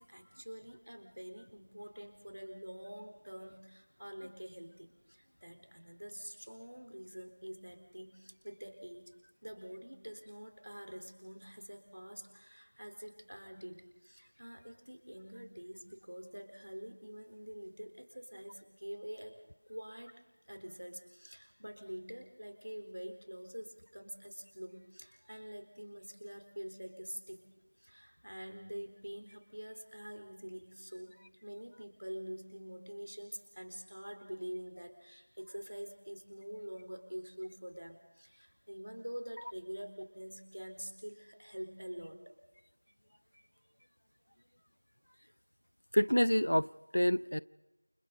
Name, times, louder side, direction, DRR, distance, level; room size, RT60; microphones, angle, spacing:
voice 1, 0.0-9.1 9.4-19.4 19.7-20.2 20.5-27.5 27.8-42.2, equal, 60° right, 4.0 m, -46 dB
voice 2, 45.9-47.4, equal, 65° left, 0.6 m, -28 dB
29.0 x 25.5 x 4.1 m
figure-of-eight pair, 175°, 0 cm